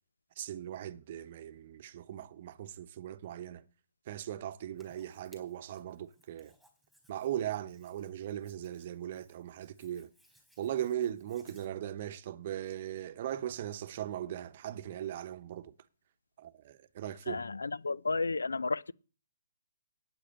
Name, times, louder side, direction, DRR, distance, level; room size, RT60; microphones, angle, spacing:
voice 1, 0.4-3.6 4.1-6.5 7.1-10.1 10.6-15.7 16.4-17.4, right 11 dB, 45° right, 0.9 m, -39 dB
Hands, 4.8-11.7, equal, 5° left, 4.3 m, -67 dB
voice 2, 17.3-18.9, left 3 dB, 90° left, 0.5 m, -32 dB
8.8 x 8.5 x 8.8 m
hypercardioid pair, 140°, 0 cm